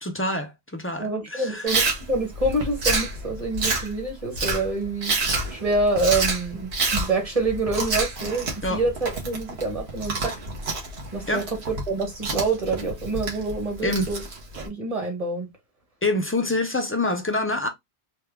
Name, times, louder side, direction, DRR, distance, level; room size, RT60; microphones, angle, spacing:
voice 1, 0.0-1.7 8.6-8.8 11.3-11.5 13.8-14.1 16.0-17.7, left 2 dB, 20° left, 0.4 m, -26 dB
voice 2, 1.0-5.1 5.5-10.3 11.1-14.2 14.6-15.5, right 3 dB, 35° right, 1.2 m, -26 dB
Chewing mastication, 1.7-14.7, right 3 dB, 75° right, 1.2 m, -29 dB
3.4 x 2.2 x 3.4 m
omnidirectional pair, 1.1 m